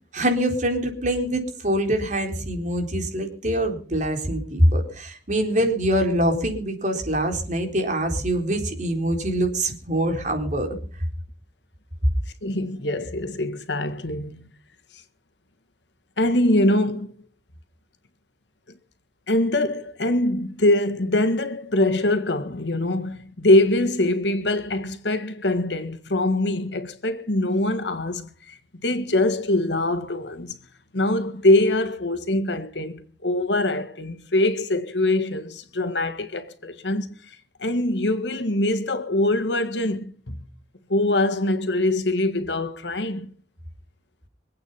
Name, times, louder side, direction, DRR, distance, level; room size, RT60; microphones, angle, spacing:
voice 1, 0.1-10.7, right 1 dB, 45° right, 4.0 m, -24 dB
voice 2, 12.4-14.5 16.2-17.1 19.3-30.6 30.9-40.4 40.9-43.3, left 1 dB, 80° left, 1.7 m, -23 dB
25.0 x 8.8 x 5.7 m
head